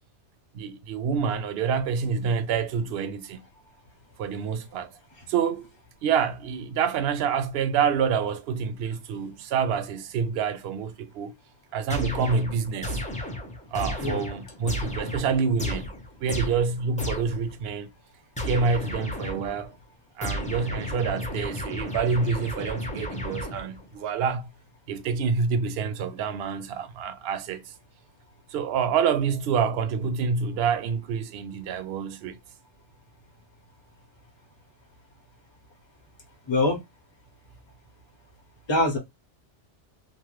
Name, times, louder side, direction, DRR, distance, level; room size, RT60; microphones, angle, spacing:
voice 1, 0.5-3.4 4.2-4.9 5.3-5.7 6.0-11.3 11.7-13.0 13.7-15.9 16.2-17.9 18.5-19.8 20.2-24.5 24.9-27.6 28.5-32.4, right 6 dB, 65° right, 0.7 m, -27 dB
sound 1, 11.9-17.5 18.4-19.7 20.2-23.9, left 1 dB, 10° left, 0.5 m, -33 dB
voice 2, 36.5-36.8 38.7-39.0, left 2 dB, 25° left, 0.8 m, -24 dB
2.9 x 2.1 x 3.0 m
omnidirectional pair, 1.2 m